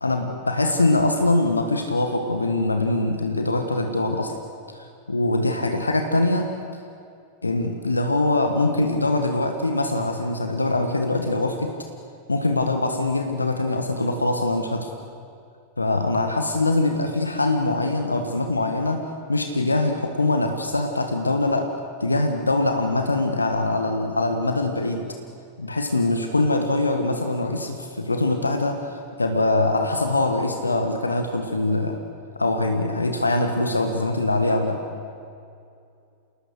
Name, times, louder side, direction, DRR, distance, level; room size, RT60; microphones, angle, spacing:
voice 1, 0.0-4.3 4.7-6.5 7.4-11.7 12.3-14.9 15.8-21.7 22.0-25.1 25.6-32.0 32.3-34.8, left 2 dB, 80° left, 5 dB, 1.5 m, -23 dB
28.0 x 20.0 x 6.6 m, 2.5 s
figure-of-eight pair, 90°, 0 cm